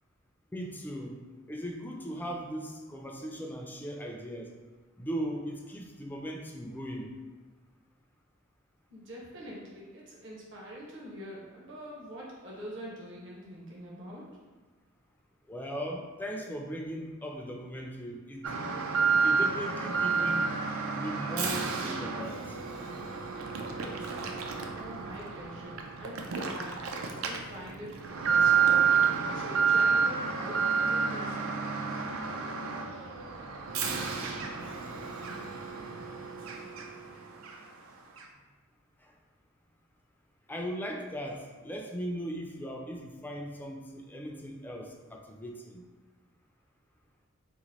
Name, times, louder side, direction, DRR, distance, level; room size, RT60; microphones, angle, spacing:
voice 1, 0.5-1.2 1.5-4.5 5.0-7.2 15.5-18.5 19.2-20.5 20.9-22.6 39.0-39.1 40.5-45.8, equal, 10° left, 1 dB, 0.3 m, -38 dB
voice 2, 8.9-14.2 24.8-26.8 27.2-28.7 29.3-32.0, equal, 60° right, -4 dB, 0.9 m, -45 dB
Alarm, 18.4-37.1 37.4-37.5 38.2-38.3, right 6 dB, 85° right, 0.4 m, -30 dB
2.9 x 2.4 x 4.1 m, 1.3 s
head